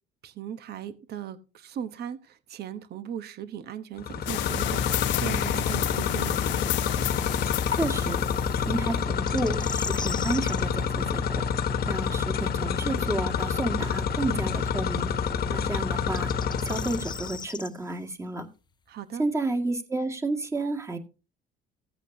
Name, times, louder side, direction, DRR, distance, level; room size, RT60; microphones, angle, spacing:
voice 1, 0.2-6.5 18.9-19.3, right 9 dB, 55° right, 1.0 m, -38 dB
sound 1, 4.0-17.4, left 6 dB, 50° left, 1.2 m, -28 dB
sound 2, 4.3-8.9, left 17 dB, 70° left, 0.5 m, -32 dB
voice 2, 7.7-8.2 8.7-11.4 11.9-15.1 15.5-16.3 16.6-18.5 19.2-21.0, right 2 dB, 15° right, 1.9 m, -31 dB
sound 3, 9.3-10.6 13.8-13.9 16.0-17.7, left 5 dB, 20° left, 0.7 m, -37 dB
16.0 x 8.2 x 2.7 m
cardioid pair, 105°, 20 cm